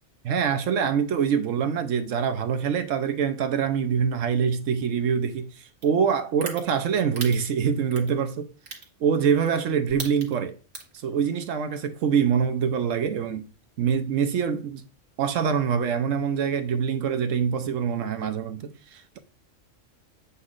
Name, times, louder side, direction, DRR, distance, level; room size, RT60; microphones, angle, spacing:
voice 1, 0.2-8.5 9.0-10.6 10.9-13.5 13.8-14.8 15.2-19.2, right 7 dB, 80° right, 1.1 m, -25 dB
sound 1, 5.8-5.9 6.4-6.6 7.2-7.3 7.9-8.1 8.7-8.8 9.4-9.6 9.9-10.3 10.7-11.0, right 4 dB, 55° right, 1.7 m, -34 dB
8.1 x 5.6 x 2.5 m
omnidirectional pair, 1.3 m